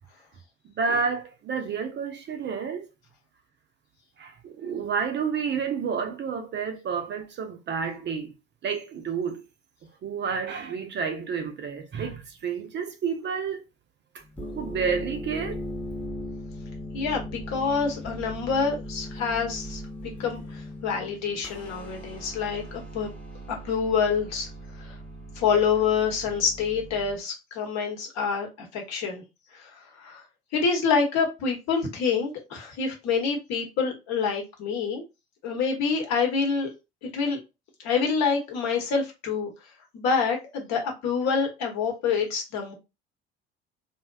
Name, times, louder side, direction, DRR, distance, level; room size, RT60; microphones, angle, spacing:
voice 1, 0.6-2.9 4.2-8.3 8.6-9.4 10.0-13.6 14.5-15.6, right 6 dB, 35° right, 0.5 m, -30 dB
sound 1, 14.2-27.2, equal, 5° left, 0.8 m, -39 dB
voice 2, 16.9-19.8 20.2-23.1 23.5-24.5 24.8-24.9 25.4-29.2 29.5-30.2 30.5-35.0 35.4-36.7 37.0-37.4 37.8-39.5 39.9-42.7, left 5 dB, 55° left, 1.0 m, -27 dB
2.6 x 2.1 x 2.3 m
figure-of-eight pair, 60°, 33 cm